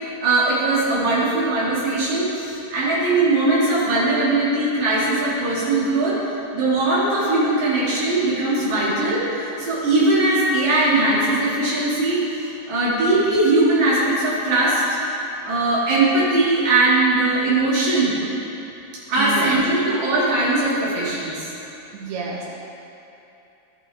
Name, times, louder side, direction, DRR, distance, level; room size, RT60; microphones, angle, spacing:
voice 1, 0.2-6.2 6.5-9.2 9.6-12.2 12.7-14.8 15.4-18.1 19.1-21.5, right 2 dB, 45° right, -9 dB, 3.8 m, -20 dB
voice 2, 19.2-19.6 21.9-22.5, right 5 dB, 85° right, -3 dB, 3.3 m, -29 dB
13.5 x 8.9 x 3.7 m, 2.9 s
omnidirectional pair, 4.9 m